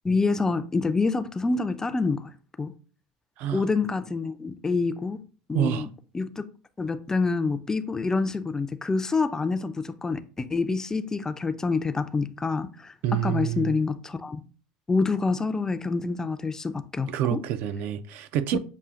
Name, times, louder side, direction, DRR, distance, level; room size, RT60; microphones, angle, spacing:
voice 1, 0.0-2.3 2.6-2.7 3.5-5.2 5.5-5.9 6.1-6.4 6.8-14.4 14.9-17.4 18.5-18.6, left 4 dB, 15° left, 0.4 m, -27 dB
voice 2, 5.5-5.9 13.0-13.7 17.1-18.6, right 11 dB, 55° right, 0.4 m, -27 dB
6.9 x 2.4 x 2.4 m
hypercardioid pair, 90°, 4 cm